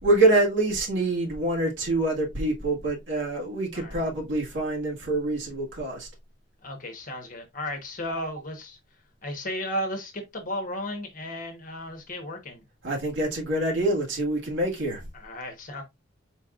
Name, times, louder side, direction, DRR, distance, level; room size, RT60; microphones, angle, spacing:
voice 1, 0.0-6.1 12.8-15.0, right 2 dB, 60° right, 1.8 m, -25 dB
voice 2, 3.7-4.1 6.6-8.8 9.2-12.6 15.1-15.8, left 1 dB, 40° left, 1.2 m, -34 dB
4.5 x 4.5 x 2.4 m
head